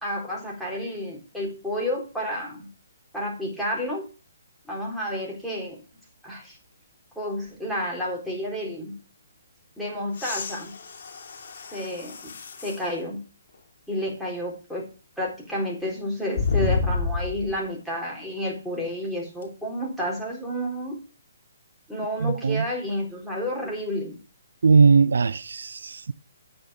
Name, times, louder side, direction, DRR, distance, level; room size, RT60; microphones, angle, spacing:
voice 1, 0.0-2.7 3.1-4.1 4.7-5.8 6.2-6.6 7.2-9.0 9.8-10.7 11.7-12.3 12.6-13.2 13.9-14.8 15.2-20.9 21.9-24.2, equal, ahead, 4.1 m, -30 dB
sound 1, 10.1-12.9 13.5-13.6 16.3-17.6 19.4-19.5, left 4 dB, 60° left, 2.4 m, -29 dB
voice 2, 22.2-22.6 24.6-26.1, right 5 dB, 75° right, 0.5 m, -19 dB
8.8 x 6.7 x 6.5 m
hypercardioid pair, 140°, 0 cm